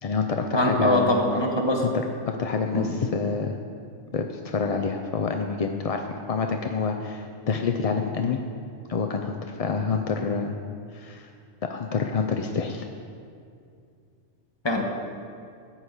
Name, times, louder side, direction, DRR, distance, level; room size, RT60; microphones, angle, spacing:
voice 1, 0.0-1.1 1.8-1.9 2.3-3.6 4.1-8.4 8.9-10.5 10.9-11.3 11.7-12.9, left 5 dB, 50° left, 4 dB, 0.4 m, -27 dB
voice 2, 0.5-1.8 2.7-3.0 14.6-14.8, left 1 dB, 20° left, 0 dB, 1.4 m, -23 dB
13.0 x 5.7 x 8.1 m, 2.4 s
omnidirectional pair, 1.3 m